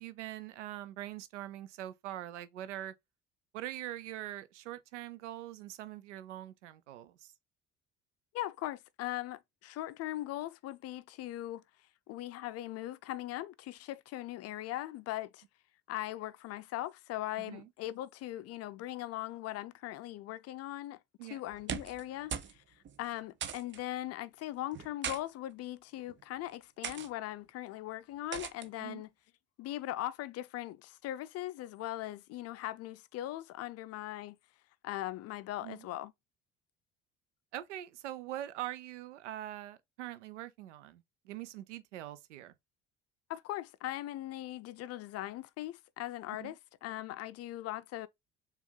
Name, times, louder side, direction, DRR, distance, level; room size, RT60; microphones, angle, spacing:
voice 1, 0.0-2.9 3.5-7.3 17.4-17.7 21.2-21.4 28.8-29.0 35.6-35.9 37.5-42.5 46.4-46.5, right 13 dB, 75° right, 0.6 m, -43 dB
voice 2, 8.3-11.6 12.1-15.4 15.9-21.0 21.3-22.3 23.0-29.1 29.6-34.4 34.8-36.1 43.3-48.1, left 15 dB, 45° left, 0.5 m, -40 dB
sound 1, 21.5-22.0 22.3-22.6 22.8-23.0 23.4-23.8 24.7-25.2 26.0-26.2 26.8-27.1 28.3-28.7, right 8 dB, 30° right, 0.6 m, -39 dB
6.9 x 2.5 x 2.2 m
figure-of-eight pair, 55°, 36 cm